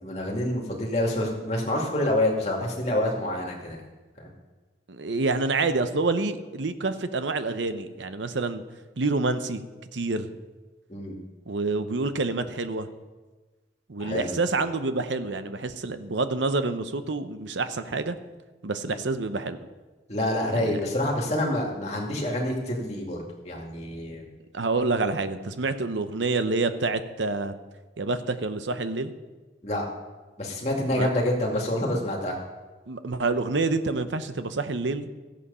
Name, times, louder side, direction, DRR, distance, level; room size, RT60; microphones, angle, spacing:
voice 1, 0.0-3.8 4.2-4.3 10.9-11.2 14.0-14.3 18.9-19.0 20.1-24.3 29.6-29.9 30.4-32.4, left 1 dB, 35° left, -1 dB, 2.3 m, -27 dB
voice 2, 4.9-8.6 9.0-9.6 9.9-10.3 11.5-12.9 13.9-18.2 18.6-19.6 20.5-20.8 24.5-27.5 28.0-29.1 30.9-31.1 32.9-35.1, right 3 dB, 85° right, 10 dB, 0.8 m, -27 dB
14.5 x 8.4 x 5.6 m, 1.3 s
head